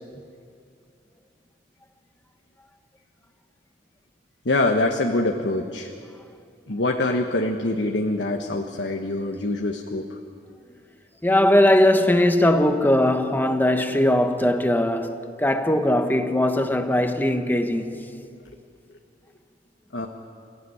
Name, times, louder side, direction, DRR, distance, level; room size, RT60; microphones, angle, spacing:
voice 1, 4.4-5.9 6.7-10.2 19.9-20.1, left 2 dB, 80° left, 1.4 m, -24 dB
voice 2, 11.2-18.0, left 1 dB, 10° left, 1.4 m, -20 dB
29.0 x 15.5 x 9.8 m
head